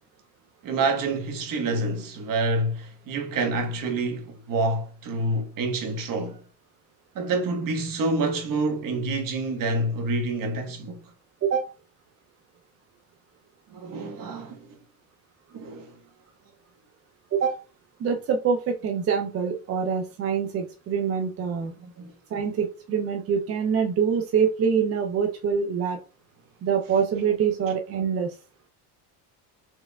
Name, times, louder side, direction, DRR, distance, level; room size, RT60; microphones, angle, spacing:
voice 1, 0.6-6.4 7.1-11.0 13.7-14.7 15.5-15.9 21.6-22.1, right 2 dB, 50° right, 1.2 m, -27 dB
voice 2, 11.4-11.7 17.3-17.6 18.0-21.7 22.3-26.0 26.6-28.4, right 6 dB, 35° right, 0.5 m, -25 dB
4.4 x 3.3 x 2.2 m
cardioid pair, 125°, 42 cm